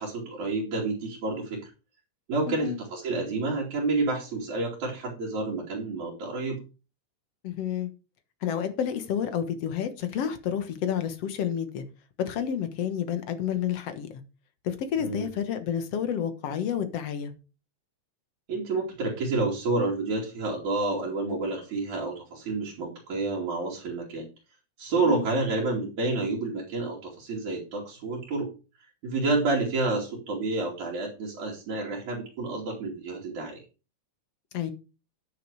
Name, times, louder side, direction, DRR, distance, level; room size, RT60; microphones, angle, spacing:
voice 1, 0.0-1.7 2.3-6.6 15.0-15.3 18.5-24.3 24.8-28.5 29.0-33.6, right 3 dB, 75° right, 4.2 m, -29 dB
voice 2, 2.5-2.8 7.4-7.9 8.4-11.8 12.2-14.1 14.6-17.3 25.1-25.3 34.5-34.7, left 9 dB, 60° left, 2.2 m, -30 dB
10.5 x 6.6 x 4.9 m
omnidirectional pair, 3.4 m